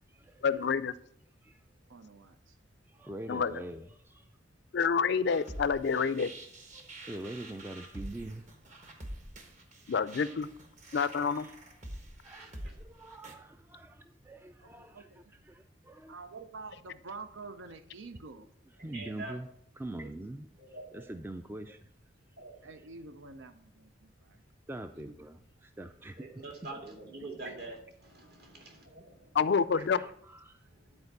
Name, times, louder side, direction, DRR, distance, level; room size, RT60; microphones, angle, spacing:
voice 1, 0.4-0.9 3.3-3.6 4.7-6.3 9.9-10.5 10.9-11.5 29.3-30.0, left 6 dB, 60° left, 15 dB, 0.4 m, -28 dB
voice 2, 1.9-2.6 14.6-15.3 16.1-18.5 20.0-20.1 22.6-24.4 24.9-25.2 27.4-27.6, right 3 dB, 75° right, 9 dB, 0.6 m, -48 dB
voice 3, 2.9-4.3 6.7-8.5 10.9-11.5 12.2-16.1 18.8-19.5 19.8-20.5 20.9-21.9 22.4-22.5 24.7-26.4 27.5-27.6 29.8-30.6, right 1 dB, 10° right, 8 dB, 0.3 m, -44 dB
sound 1, 5.3-13.3, right 1 dB, 40° right, 1.2 m, -46 dB
voice 4, 12.3-12.8 18.8-19.4 20.6-21.1 22.4-22.7 26.2-29.3 30.7-31.0, right 2 dB, 55° right, 2 dB, 2.1 m, -46 dB
10.5 x 4.4 x 6.7 m, 0.71 s
head